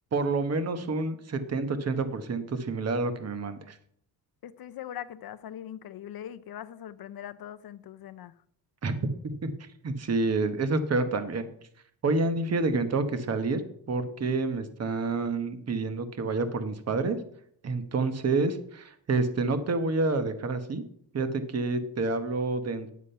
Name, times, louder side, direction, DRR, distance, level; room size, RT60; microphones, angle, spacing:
voice 1, 0.1-3.8 8.8-9.5 9.8-11.5 12.0-13.6 13.9-17.2 17.6-20.8 21.1-22.9, right 3 dB, 40° right, 1.1 m, -28 dB
voice 2, 4.4-8.3, left 10 dB, 60° left, 0.6 m, -41 dB
10.0 x 7.4 x 5.6 m
cardioid pair, 135°, 41 cm